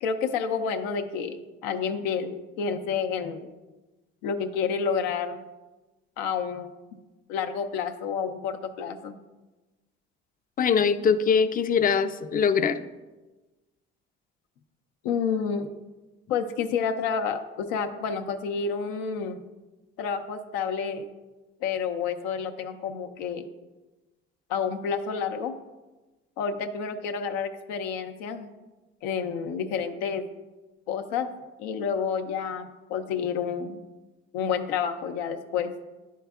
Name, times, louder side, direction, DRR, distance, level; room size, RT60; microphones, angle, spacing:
voice 1, 0.0-3.5 4.2-5.4 6.2-6.7 7.3-9.1 15.0-15.7 16.3-19.4 20.0-21.1 21.6-23.4 24.5-25.5 26.4-28.5 29.0-30.2 30.9-31.3 31.6-33.8 34.3-35.7, left 6 dB, 85° left, 7 dB, 0.5 m, -29 dB
voice 2, 10.6-12.9, left 6 dB, 30° left, 11 dB, 0.4 m, -22 dB
10.0 x 4.5 x 2.3 m, 1.1 s
supercardioid pair, 65°, 29 cm